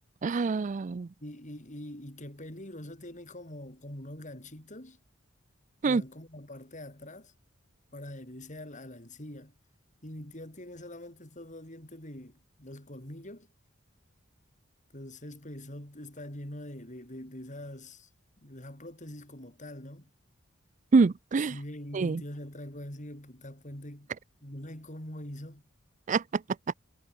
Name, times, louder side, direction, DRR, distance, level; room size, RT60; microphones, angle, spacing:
voice 1, 0.2-1.1 5.8-6.0 20.9-21.5 21.9-22.2 26.1-26.4, right 4 dB, 40° right, 0.4 m, -25 dB
voice 2, 1.2-5.0 5.8-7.3 7.9-9.5 10.0-13.5 14.9-18.1 18.4-20.1 21.5-24.1 24.4-25.6, left 1 dB, 40° left, 6.6 m, -44 dB
head